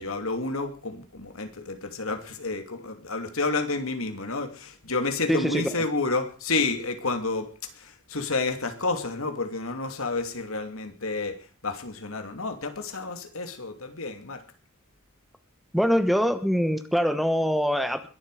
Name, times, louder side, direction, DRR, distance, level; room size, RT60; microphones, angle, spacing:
voice 1, 0.0-7.5 7.7-11.4 11.6-14.4, left 3 dB, 75° left, 7 dB, 2.8 m, -30 dB
voice 2, 5.3-5.7 15.7-18.1, equal, ahead, 10 dB, 1.1 m, -23 dB
22.0 x 12.0 x 5.0 m, 0.38 s
head